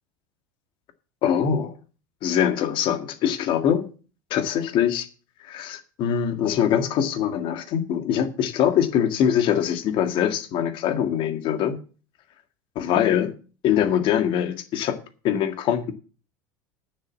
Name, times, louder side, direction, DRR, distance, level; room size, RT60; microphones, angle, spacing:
voice 1, 1.2-1.8 2.2-3.9 4.3-5.1 5.4-11.8 12.8-13.3 13.6-15.0 15.2-15.9, left 9 dB, 50° left, 1.8 m, -23 dB
9.6 x 7.3 x 7.2 m
supercardioid pair, 115°, 11 cm